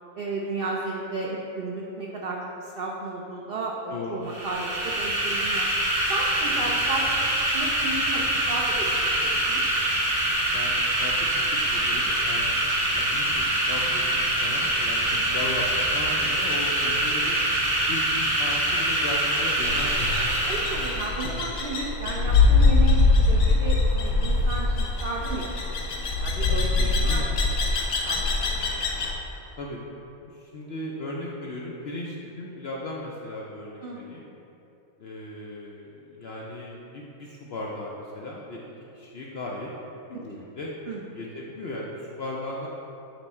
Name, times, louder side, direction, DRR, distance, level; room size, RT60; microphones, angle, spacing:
voice 1, 0.1-5.7 6.1-7.2 7.5-9.6 15.1-15.4 20.5-28.8 33.8-34.3 40.9-41.0, right 2 dB, 80° right, -2 dB, 0.5 m, -34 dB
voice 2, 3.9-4.2 6.5-6.7 10.5-11.1 11.6-15.7 15.9-17.4 17.9-20.7 22.1-22.4 26.8-27.2 29.6-29.8 30.3-34.2 35.0-40.7 41.1-42.7, left 1 dB, 65° left, -3 dB, 0.6 m, -37 dB
sound 1, 4.3-21.1, right 1 dB, 30° right, 0.8 m, -25 dB
sound 2, 19.6-29.1, left 3 dB, 85° left, 1.3 m, -23 dB
6.9 x 3.5 x 4.2 m, 2.9 s
omnidirectional pair, 1.6 m